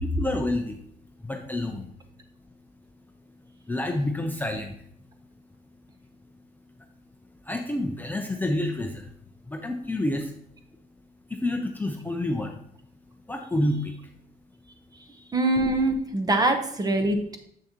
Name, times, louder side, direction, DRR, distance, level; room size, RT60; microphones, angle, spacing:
voice 1, 0.0-0.8 1.2-1.9 3.7-4.8 7.4-9.1 9.5-10.3 11.3-12.6 13.3-13.9, left 1 dB, 10° left, 3 dB, 0.6 m, -28 dB
voice 2, 15.3-17.4, right 2 dB, 20° right, 7 dB, 0.9 m, -23 dB
7.4 x 6.3 x 2.9 m, 0.68 s
cardioid pair, 110°, 17 cm